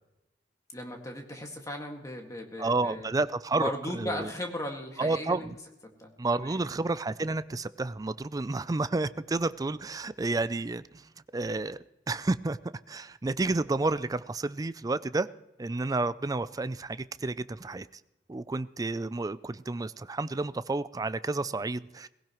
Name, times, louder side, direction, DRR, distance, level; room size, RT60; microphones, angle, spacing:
voice 1, 0.7-3.1 3.6-5.5 6.0-6.6 8.5-8.6, left 1 dB, 20° left, 2 dB, 1.9 m, -37 dB
voice 2, 2.6-4.3 5.0-5.6 6.2-11.8 12.1-12.6 12.9-15.3 15.6-17.9 18.3-22.1, right 3 dB, 20° right, 15 dB, 0.4 m, -30 dB
19.0 x 16.5 x 3.0 m, 0.94 s
head